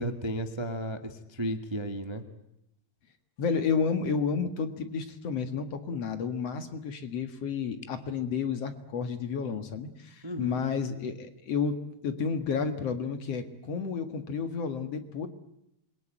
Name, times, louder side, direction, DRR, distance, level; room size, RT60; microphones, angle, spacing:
voice 1, 0.0-2.2 10.2-10.6, right 1 dB, 45° right, 7 dB, 0.3 m, -34 dB
voice 2, 3.4-11.8 12.0-15.3, left 6 dB, 50° left, 9 dB, 2.4 m, -31 dB
28.0 x 22.5 x 9.1 m, 0.81 s
omnidirectional pair, 4.2 m